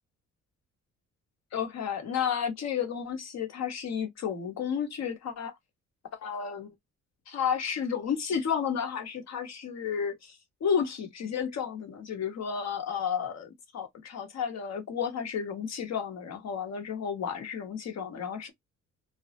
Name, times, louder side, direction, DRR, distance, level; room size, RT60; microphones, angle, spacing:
voice 1, 1.5-5.5 6.1-6.7 7.3-10.3 10.6-18.5, left 7 dB, 60° left, 0.9 m, -32 dB
2.1 x 2.0 x 2.8 m
cardioid pair, 90°, 30 cm